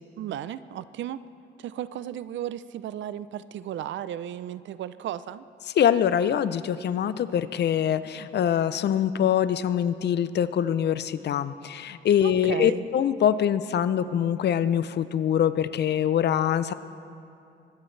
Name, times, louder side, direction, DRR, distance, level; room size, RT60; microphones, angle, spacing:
voice 1, 0.2-1.2 1.6-5.4 12.2-12.9, right 11 dB, 70° right, 15 dB, 0.6 m, -35 dB
voice 2, 5.8-16.7, left 9 dB, 60° left, 14 dB, 0.6 m, -24 dB
24.0 x 18.5 x 3.3 m, 2.7 s
cardioid pair, 90°, 20 cm